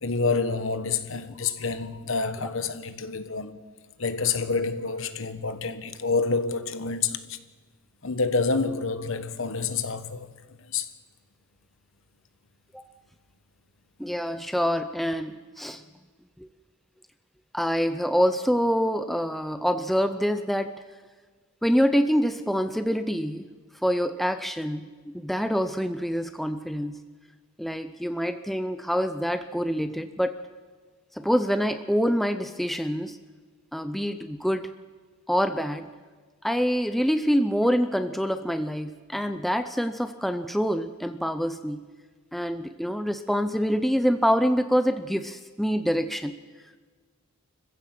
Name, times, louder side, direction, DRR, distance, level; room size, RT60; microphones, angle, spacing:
voice 1, 0.0-3.6 4.0-7.4 8.0-10.3 10.6-10.9, left 4 dB, 60° left, 1.2 m, -28 dB
voice 2, 14.0-15.8 16.4-16.5 17.5-20.7 21.6-23.5 23.8-27.0 27.6-30.4 31.1-33.2 33.7-34.7 35.3-35.9 36.4-41.9 42.3-46.4, equal, ahead, 0.5 m, -26 dB
26.0 x 15.5 x 7.6 m
head